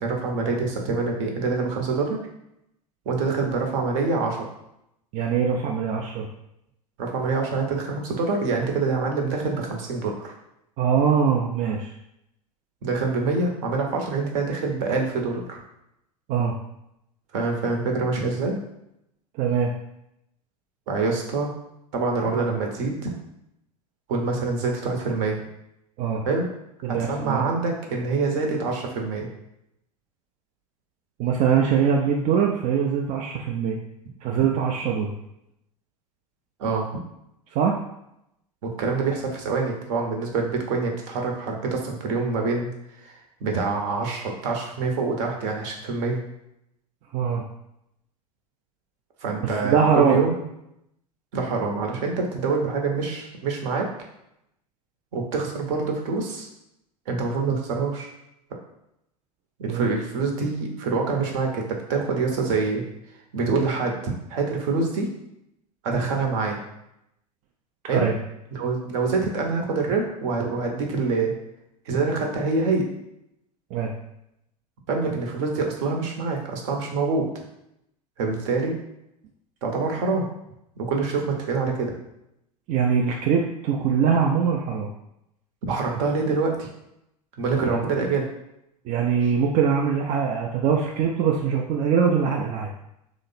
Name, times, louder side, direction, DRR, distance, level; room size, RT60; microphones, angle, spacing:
voice 1, 0.0-2.2 3.1-4.4 7.0-10.3 12.8-15.6 17.3-18.6 20.9-21.5 21.9-23.1 24.1-25.4 26.2-26.5 26.9-29.3 36.6-36.9 38.6-42.7 43.0-46.2 49.2-50.4 51.3-53.9 55.1-56.5 57.1-58.1 59.6-62.8 63.3-65.1 65.8-66.6 67.9-68.1 68.5-71.3 71.9-72.9 74.9-77.3 78.2-78.8 79.6-80.3 80.8-81.9 85.7-86.7 87.4-88.3, right 4 dB, 55° right, 2 dB, 0.8 m, -25 dB
voice 2, 5.1-6.3 10.8-11.9 16.3-16.6 19.4-19.7 26.0-26.2 26.8-27.4 31.2-33.8 34.2-35.1 37.5-37.8 47.1-47.4 49.4-50.2 59.6-59.9 67.9-68.2 73.7-73.9 82.7-84.9 87.6-87.8 88.9-92.7, right 7 dB, 40° right, 0 dB, 0.4 m, -22 dB
3.1 x 2.0 x 4.0 m, 0.82 s
figure-of-eight pair, 80°, 20 cm